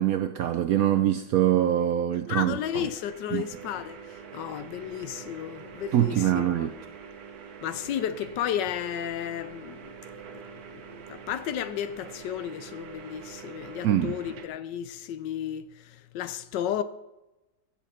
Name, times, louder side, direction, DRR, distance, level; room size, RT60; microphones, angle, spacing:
voice 1, 0.0-2.9 3.3-3.4 5.9-6.7 13.8-14.1, right 11 dB, 75° right, 0.8 m, -24 dB
voice 2, 2.3-6.7 7.6-9.9 10.3-10.4 10.7-16.8, left 10 dB, 75° left, 1.2 m, -33 dB
sound 1, 2.6-14.5, right 7 dB, 60° right, 1.4 m, -45 dB
15.5 x 7.1 x 4.3 m
omnidirectional pair, 2.0 m